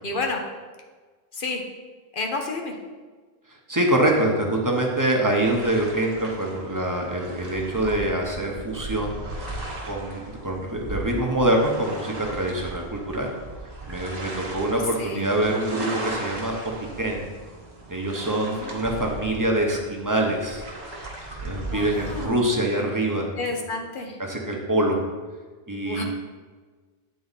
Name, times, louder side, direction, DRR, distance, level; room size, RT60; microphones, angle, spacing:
voice 1, 0.0-0.4 1.4-1.6 2.1-2.7 15.0-15.2 18.4-18.7 21.6-22.4 23.4-24.2 25.8-26.0, left 3 dB, 55° left, 2 dB, 1.0 m, -30 dB
voice 2, 3.7-9.2 9.9-13.3 13.9-16.5 17.0-17.3 17.9-20.6 21.4-23.3 24.2-25.0 25.7-26.0, right 1 dB, 20° right, 0 dB, 0.9 m, -24 dB
sound 1, 5.3-22.3, right 2 dB, 40° right, 1.1 m, -37 dB
8.6 x 4.1 x 4.1 m, 1.4 s
omnidirectional pair, 1.1 m